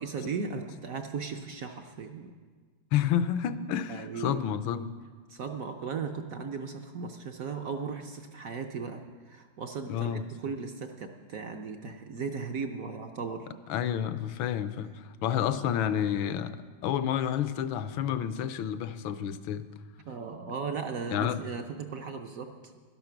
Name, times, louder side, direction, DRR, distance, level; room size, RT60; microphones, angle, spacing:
voice 1, 0.0-2.3 3.9-4.6 5.3-13.5 20.1-22.8, right 5 dB, 65° right, 5 dB, 0.8 m, -37 dB
voice 2, 2.9-4.9 9.9-10.2 13.7-19.7 21.1-21.4, left 9 dB, 80° left, 12 dB, 1.4 m, -30 dB
12.0 x 12.0 x 5.9 m, 1.5 s
omnidirectional pair, 2.2 m